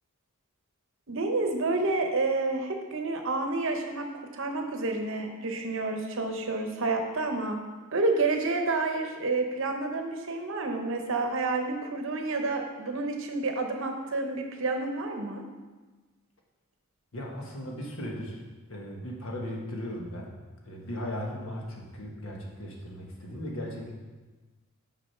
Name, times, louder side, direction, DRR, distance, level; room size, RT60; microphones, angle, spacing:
voice 1, 1.1-7.6 7.9-15.4, right 3 dB, 60° right, 4 dB, 0.9 m, -29 dB
voice 2, 17.1-18.4 18.7-20.3 20.6-23.9, equal, 60° left, -1 dB, 1.3 m, -37 dB
6.3 x 5.0 x 5.7 m, 1.3 s
head